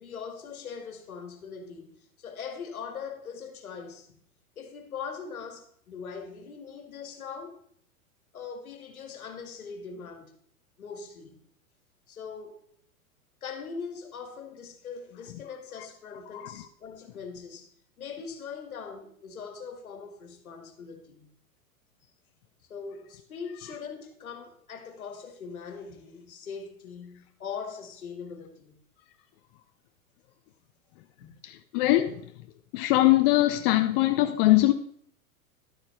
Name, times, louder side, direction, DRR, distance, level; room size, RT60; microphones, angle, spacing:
voice 1, 0.0-4.2 4.6-7.6 8.3-10.3 10.8-11.4 12.1-12.6 13.4-17.7 18.0-21.3 22.7-28.8 31.2-31.4, left 6 dB, 80° left, 1.9 m, -41 dB
voice 2, 31.4-32.3 32.7-34.7, left 16 dB, 40° left, 0.7 m, -22 dB
11.5 x 8.4 x 3.2 m
hypercardioid pair, 105°, 43 cm